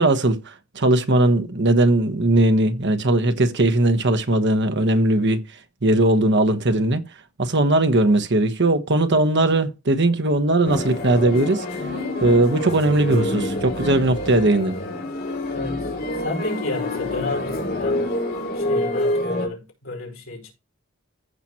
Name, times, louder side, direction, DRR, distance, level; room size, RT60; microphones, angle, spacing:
voice 1, 0.0-5.4 5.8-7.0 7.4-11.6 12.2-14.7, right 2 dB, 55° right, 1.3 m, -19 dB
sound 1, 10.7-19.5, left 1 dB, 50° left, 2.9 m, -27 dB
voice 2, 15.5-18.2 18.5-20.5, left 2 dB, 70° left, 5.0 m, -31 dB
15.0 x 6.0 x 3.0 m
head